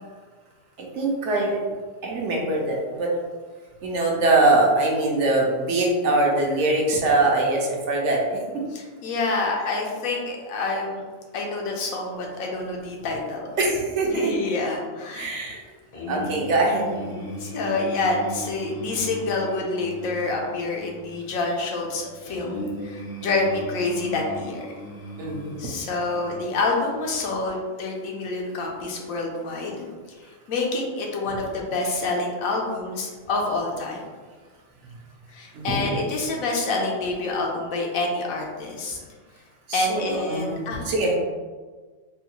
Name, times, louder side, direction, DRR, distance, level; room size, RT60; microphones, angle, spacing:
voice 1, 0.8-1.6 2.0-3.1 3.8-8.6 13.6-14.3 15.1-15.6 16.1-16.8 25.2-25.6 35.5-35.8 39.7-41.2, right 2 dB, 65° right, -1 dB, 0.9 m, -23 dB
voice 2, 8.7-11.0 11.3-13.5 14.1-15.6 17.4-24.7 25.6-29.8 30.5-34.0 35.3-39.0 39.7-40.8, left 3 dB, 90° left, 0 dB, 1.1 m, -27 dB
sound 1, 15.9-27.2, equal, 45° left, 0.6 m, -37 dB
3.6 x 2.3 x 2.9 m, 1.4 s
omnidirectional pair, 1.4 m